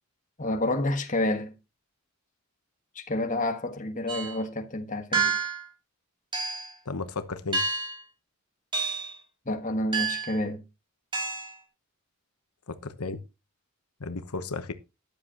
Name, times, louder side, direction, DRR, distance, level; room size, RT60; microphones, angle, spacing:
voice 1, 0.4-1.5 2.9-5.4 9.4-10.6, left 1 dB, 35° left, 1.4 m, -29 dB
sound 1, 4.1-4.4 5.1-5.6 6.3-6.7 7.5-8.0 8.7-9.1 9.9-10.4 11.1-11.5, right 4 dB, 20° right, 2.9 m, -29 dB
voice 2, 6.9-7.6 12.7-13.2 14.0-14.7, left 3 dB, 85° left, 1.0 m, -34 dB
13.5 x 10.5 x 2.9 m
head